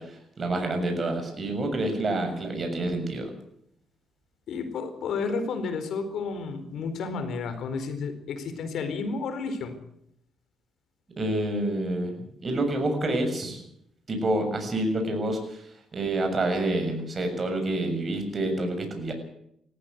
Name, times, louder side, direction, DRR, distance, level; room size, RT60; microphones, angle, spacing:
voice 1, 0.0-3.3 11.2-12.1 12.4-13.6 14.1-19.1, right 1 dB, 35° right, 5 dB, 6.9 m, -28 dB
voice 2, 4.5-9.7, left 4 dB, 70° left, 10 dB, 4.3 m, -31 dB
19.0 x 15.0 x 9.5 m, 0.73 s
cardioid pair, 90°, 0 cm